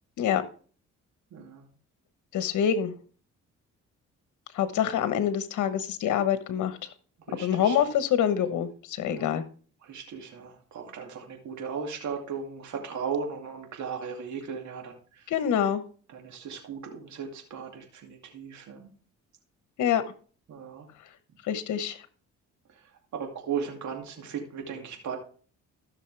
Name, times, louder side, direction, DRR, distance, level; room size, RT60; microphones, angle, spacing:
voice 1, 1.3-1.7 7.3-7.9 9.1-9.3 9.8-15.2 16.1-18.9 20.5-20.9 23.1-25.2, right 6 dB, 70° right, 2 dB, 2.5 m, -37 dB
voice 2, 2.3-2.9 4.5-6.8 7.4-8.7 9.0-9.4 15.3-15.8 19.8-20.0 21.5-22.0, left 9 dB, 75° left, 11 dB, 1.2 m, -25 dB
14.0 x 6.5 x 3.4 m, 0.41 s
cardioid pair, 90°, 30 cm